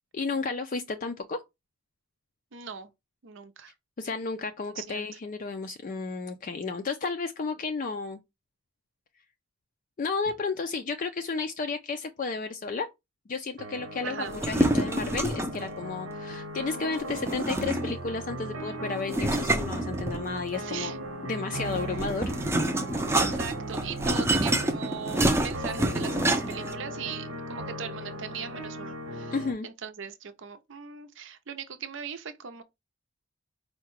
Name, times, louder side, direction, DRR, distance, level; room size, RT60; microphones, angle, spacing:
voice 1, 0.1-1.4 4.0-8.2 10.0-12.9 13.3-20.9 21.2-22.3 29.3-29.7, left 4 dB, 40° left, 0.3 m, -32 dB
voice 2, 2.5-2.9 3.2-3.7 4.8-5.1 14.0-14.4 20.6-21.0 23.2-29.4 29.6-32.6, right 6 dB, 60° right, 0.6 m, -39 dB
sound 1, 13.6-29.5, right 1 dB, 85° right, 1.0 m, -38 dB
sound 2, 14.3-15.6 17.1-18.1 19.1-20.5 21.6-26.7, right 1 dB, 10° right, 0.5 m, -27 dB
4.7 x 2.2 x 4.5 m
head